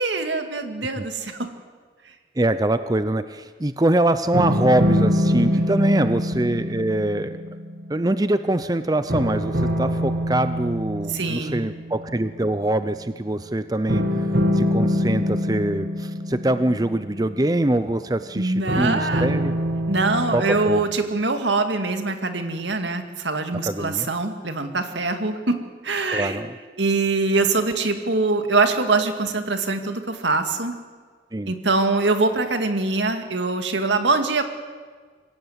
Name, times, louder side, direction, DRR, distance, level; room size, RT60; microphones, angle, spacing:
voice 1, 0.0-1.5 5.5-6.0 11.1-11.7 18.4-19.3 19.9-26.4 26.8-30.7 31.5-34.4, right 3 dB, 85° right, 6 dB, 2.2 m, -23 dB
voice 2, 2.4-7.3 7.9-14.3 14.5-19.5 20.3-20.8 23.7-24.1 26.1-26.6 31.3-31.5, right 1 dB, 20° right, 12 dB, 0.6 m, -23 dB
sound 1, 4.3-8.7 9.1-12.4 13.9-17.9 18.7-20.9, equal, 60° right, 2.1 m, -25 dB
25.5 x 16.0 x 8.1 m, 1.5 s
head